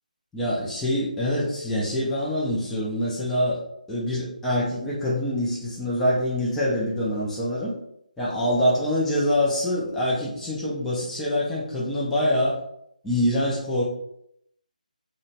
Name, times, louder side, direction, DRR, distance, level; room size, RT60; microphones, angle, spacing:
voice 1, 0.3-3.6 3.9-7.7 8.2-12.6 13.0-13.8, left 1 dB, 5° left, -7 dB, 0.4 m, -25 dB
2.8 x 2.1 x 2.7 m, 0.74 s
figure-of-eight pair, 150°, 5 cm